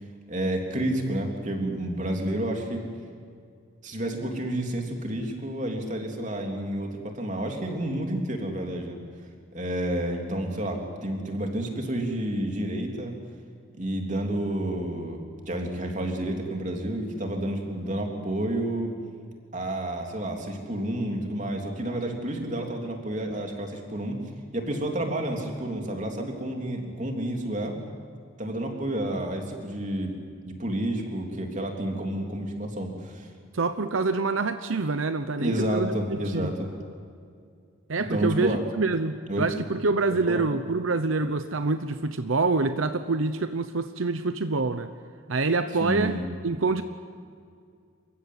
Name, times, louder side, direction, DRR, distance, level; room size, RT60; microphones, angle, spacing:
voice 1, 0.3-2.8 3.8-9.0 9.5-13.1 13.8-15.2 15.5-18.9 19.5-24.2 24.5-27.7 28.4-30.1 30.5-33.3 35.4-36.7 38.1-38.6 39.3-39.4 40.3-40.5 45.8-46.2, right 1 dB, 40° right, 2 dB, 3.3 m, -30 dB
voice 2, 33.5-36.5 37.9-44.9 45.3-46.8, right 3 dB, 80° right, 10 dB, 0.9 m, -26 dB
28.0 x 15.5 x 9.5 m, 2.3 s
head